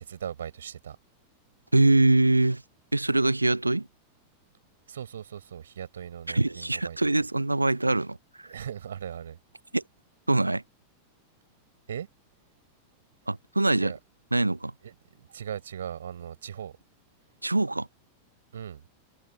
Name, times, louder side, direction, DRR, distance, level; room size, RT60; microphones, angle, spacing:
voice 1, 0.1-1.0 4.9-7.0 8.5-9.4 11.9-12.1 13.8-14.0 14.8-14.9 15.3-16.7 18.5-18.8, right 9 dB, 65° right, 5.1 m, -38 dB
voice 2, 1.7-2.6 2.9-3.9 6.3-8.5 9.7-9.8 10.3-10.6 13.3-13.9 14.3-14.7 17.4-17.9, right 2 dB, 85° right, 0.7 m, -23 dB
figure-of-eight pair, 90°, 0 cm